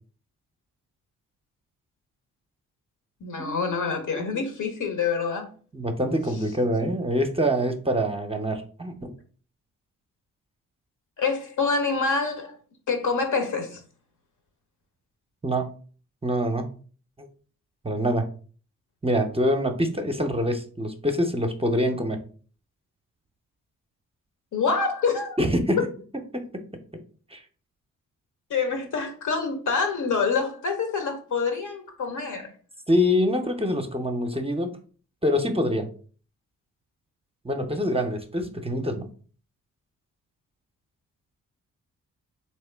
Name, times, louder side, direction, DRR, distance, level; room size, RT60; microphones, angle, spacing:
voice 1, 3.2-5.5 11.2-12.6 12.9-13.8 24.5-25.4 25.8-25.9 28.5-32.5, left 5 dB, 55° left, 1.3 m, -26 dB
voice 2, 5.7-9.1 15.4-15.7 16.2-16.8 17.2-17.3 17.8-18.3 19.0-22.2 25.4-25.8 26.3-26.4 27.3-27.4 32.9-34.7 35.2-35.9 37.4-39.1, equal, 15° right, 0.8 m, -25 dB
3.5 x 3.1 x 3.4 m
hypercardioid pair, 40°, 36 cm